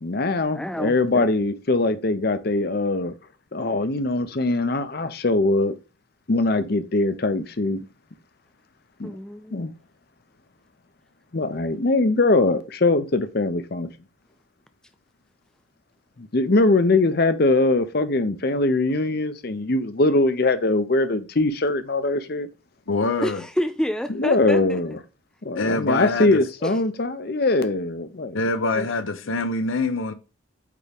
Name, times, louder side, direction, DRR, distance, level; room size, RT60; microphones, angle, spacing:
voice 1, 0.0-3.1 3.5-5.8 6.3-7.8 9.0-9.1 9.5-9.7 11.3-13.9 16.2-22.5 24.2-25.0 25.4-28.4 28.8-28.9, left 2 dB, 50° left, 0.7 m, -22 dB
voice 2, 0.5-1.3 9.0-9.7 23.2-24.8 26.6-26.7, equal, 5° left, 0.3 m, -29 dB
voice 3, 22.9-23.4 25.5-26.4 28.3-30.1, left 2 dB, 80° left, 0.8 m, -24 dB
8.4 x 3.7 x 3.4 m
head